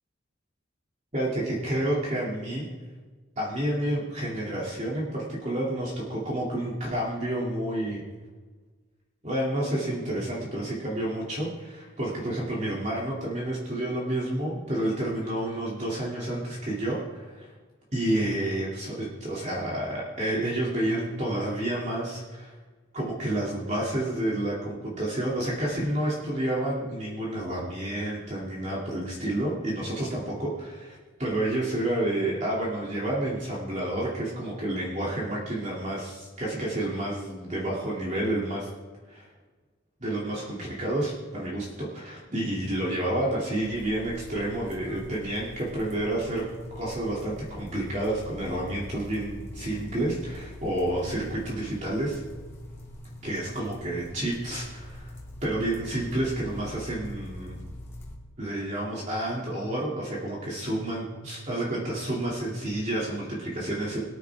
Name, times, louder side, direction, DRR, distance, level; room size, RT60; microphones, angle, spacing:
voice 1, 1.1-2.6 3.4-8.0 9.2-17.5 17.9-22.5 22.9-38.7 39.1-39.3 40.0-46.5 46.7-52.2 53.2-55.1 55.4-57.6 58.4-64.0, right 1 dB, 35° right, -5 dB, 2.5 m, -30 dB
sound 1, 43.6-58.1, left 1 dB, 10° left, 2.7 m, -43 dB
23.5 x 9.5 x 3.5 m, 1.4 s
head